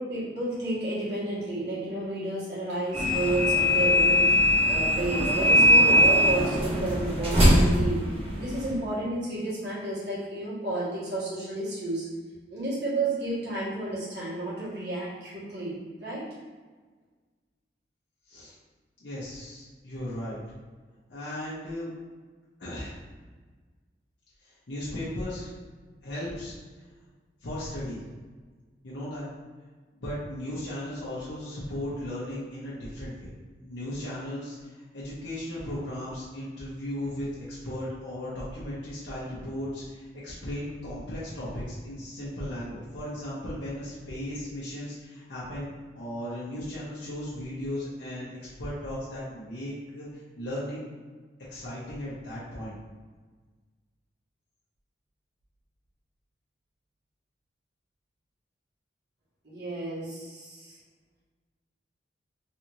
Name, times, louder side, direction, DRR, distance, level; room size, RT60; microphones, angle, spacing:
voice 1, 0.0-8.0 8.3-12.0 12.5-16.2 59.4-60.8, right 2 dB, 65° right, -9 dB, 1.4 m, -31 dB
sound 1, 2.9-8.8, equal, 35° right, 0.8 m, -21 dB
voice 2, 19.0-20.4 21.1-21.9 22.6-23.0 24.4-25.5 26.0-26.5 27.4-28.0 28.8-29.3 29.9-33.3 33.6-45.7 46.0-50.1 50.4-50.8 51.5-52.7, left 1 dB, 75° left, -9 dB, 0.8 m, -36 dB
3.3 x 2.6 x 2.9 m, 1.4 s
head